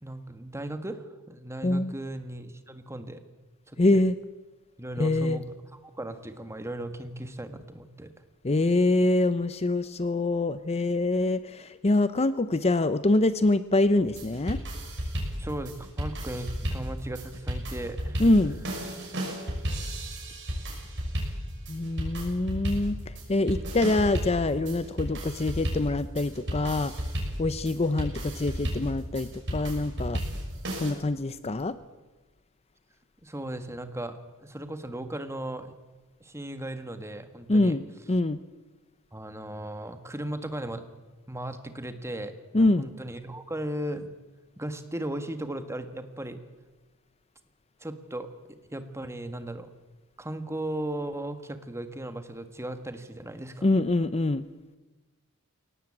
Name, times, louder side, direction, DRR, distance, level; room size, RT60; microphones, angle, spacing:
voice 1, 0.0-3.2 3.7-4.0 4.8-5.5 5.8-8.1 15.4-18.2 33.2-35.7 36.2-37.8 39.1-40.8 41.3-44.1 44.6-46.4 47.8-48.3 48.7-49.7 50.2-53.7, right 1 dB, 15° right, 9 dB, 1.6 m, -36 dB
voice 2, 1.6-1.9 3.8-4.2 5.0-5.4 8.4-14.6 18.2-18.6 21.7-26.9 27.4-30.2 30.8-31.8 37.5-37.8 38.1-38.4 42.5-42.9 53.6-54.4, left 2 dB, 30° left, 13 dB, 0.6 m, -25 dB
sound 1, 14.1-30.9, equal, 55° right, 6.3 m, -33 dB
22.0 x 18.5 x 8.7 m, 1.2 s
head